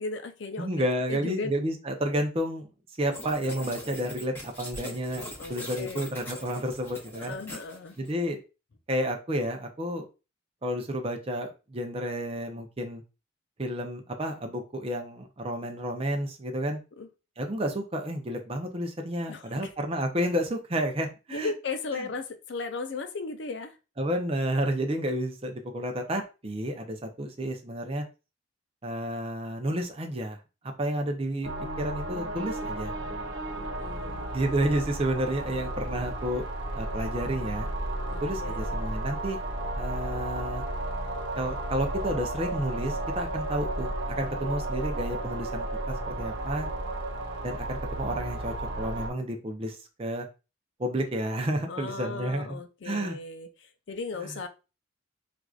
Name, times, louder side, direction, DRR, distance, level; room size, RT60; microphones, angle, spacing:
voice 1, 0.0-1.5 5.4-6.0 7.1-8.0 17.0-17.1 19.3-19.7 21.3-23.8 33.5-34.3 38.1-38.8 51.7-54.5, left 4 dB, 65° left, 0.5 m, -36 dB
voice 2, 0.6-2.7 3.0-7.3 8.0-8.4 8.9-10.1 10.6-13.0 13.6-16.8 17.4-21.5 21.9-22.1 24.0-28.0 28.8-30.4 30.8-31.5 31.8-32.9 34.3-36.4 36.7-37.7 38.2-39.4 39.7-40.6 41.4-46.7 47.4-50.3 50.8-53.2 54.2-54.3, right 1 dB, 30° right, 0.5 m, -31 dB
sound 1, 3.1-8.1, equal, 10° left, 0.9 m, -42 dB
sound 2, 31.4-49.1, right 2 dB, 70° right, 1.0 m, -33 dB
4.5 x 2.5 x 2.4 m
head